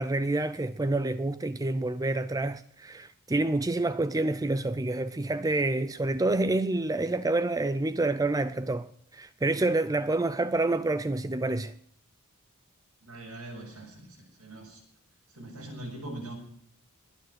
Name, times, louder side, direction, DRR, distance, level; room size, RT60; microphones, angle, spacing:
voice 1, 0.0-11.7, right 2 dB, 15° right, 0.5 m, -28 dB
voice 2, 13.0-14.8 15.3-16.3, right 1 dB, 75° right, 6.9 m, -42 dB
21.5 x 9.3 x 6.3 m
head